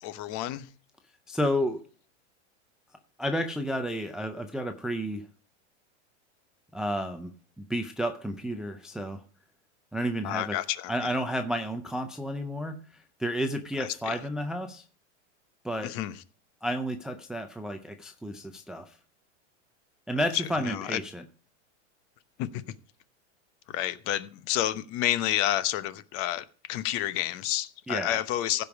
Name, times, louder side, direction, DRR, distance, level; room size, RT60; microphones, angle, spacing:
voice 1, 0.0-0.7 10.2-11.1 14.1-14.2 15.8-16.2 20.3-21.0 22.4-22.6 23.7-28.6, left 13 dB, 40° left, 0.9 m, -30 dB
voice 2, 1.3-1.8 3.2-5.2 6.7-7.3 7.6-9.2 9.9-10.6 10.9-14.8 15.6-15.9 16.6-19.0 20.1-21.2 27.9-28.2, equal, ahead, 0.4 m, -31 dB
15.5 x 5.4 x 4.7 m
supercardioid pair, 150°, 35 cm